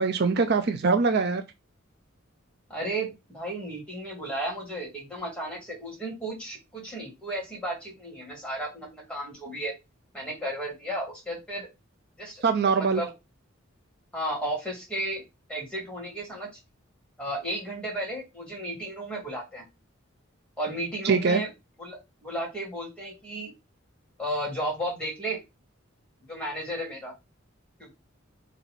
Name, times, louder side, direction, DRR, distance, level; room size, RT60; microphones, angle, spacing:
voice 1, 0.0-1.4 12.4-13.0 21.0-21.4, right 4 dB, 50° right, 0.5 m, -23 dB
voice 2, 2.7-9.7 10.1-11.7 12.2-13.1 14.1-15.2 15.5-16.5 17.2-19.6 20.6-21.5 21.8-23.5 24.2-25.4 26.3-27.1 27.8-27.9, right 1 dB, 5° left, 2.3 m, -34 dB
4.0 x 3.0 x 4.4 m
head